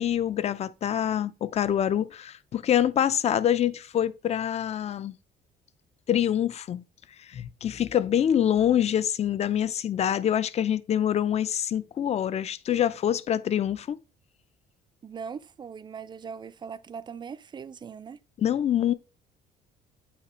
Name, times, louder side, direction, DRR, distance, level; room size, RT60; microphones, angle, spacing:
voice 1, 0.0-5.1 6.1-6.8 7.3-14.0 18.4-18.9, left 10 dB, 40° left, 0.5 m, -25 dB
voice 2, 15.0-18.2, right 6 dB, 25° right, 0.4 m, -40 dB
8.5 x 2.8 x 4.3 m
cardioid pair, 110°, 17 cm